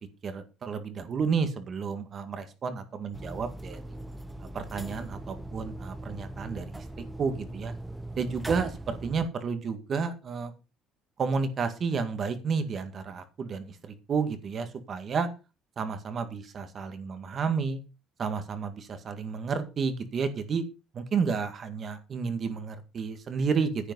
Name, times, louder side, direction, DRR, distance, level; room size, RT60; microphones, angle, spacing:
voice 1, 0.2-3.8 4.5-7.7 8.2-10.5 11.2-13.8 14.1-15.3 15.8-17.8 18.2-20.6 20.9-23.9, right 5 dB, 35° right, 9 dB, 1.9 m, -31 dB
sound 1, 3.1-9.3, right 1 dB, 5° right, 0.8 m, -40 dB
10.0 x 9.0 x 5.4 m, 0.30 s
cardioid pair, 145°, 0 cm